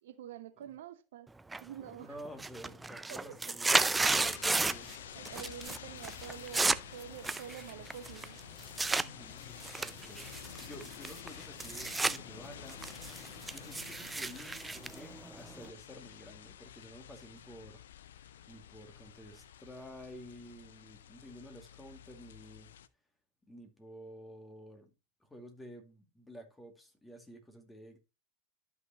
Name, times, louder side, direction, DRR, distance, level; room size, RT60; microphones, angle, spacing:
voice 1, 0.0-1.3 1.5-2.2 3.1-3.2 5.1-8.4, right 9 dB, 65° right, 0.8 m, -47 dB
sound 1, 1.5-1.9 2.2-5.0 5.3-5.8 6.0-9.1 9.6-12.2 12.5-15.7, right 3 dB, 10° right, 0.5 m, -33 dB
voice 2, 2.0-4.9 9.0-10.3 10.6-12.8 13.5-17.8 18.1-22.7 23.5-24.9 25.2-28.0, equal, 10° left, 2.3 m, -51 dB
sound 2, 4.0-22.9, left 10 dB, 70° left, 0.5 m, -50 dB
12.5 x 5.9 x 2.9 m
figure-of-eight pair, 85°, 0 cm